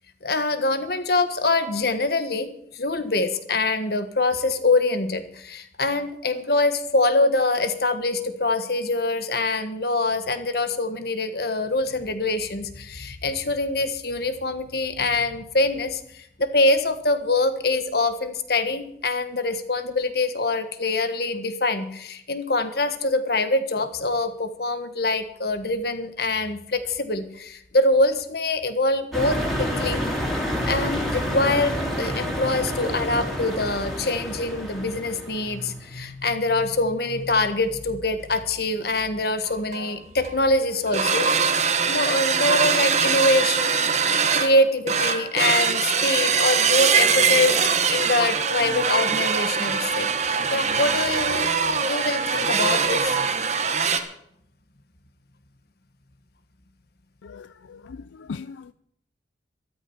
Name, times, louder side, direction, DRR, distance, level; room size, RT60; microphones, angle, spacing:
voice 1, 0.2-16.0 16.4-30.0 30.6-47.6 47.9-51.5 51.8-53.3, left 2 dB, 55° left, 9 dB, 1.5 m, -24 dB
sound 1, 29.1-35.7, equal, ahead, 3.3 m, -28 dB
sound 2, 39.4-39.5 39.7-39.9 40.2-40.5 40.8-54.0, right 6 dB, 35° right, 1.3 m, -22 dB
voice 2, 57.2-58.7, left 5 dB, 85° left, 15 dB, 0.4 m, -39 dB
13.5 x 13.5 x 5.6 m, 0.71 s
head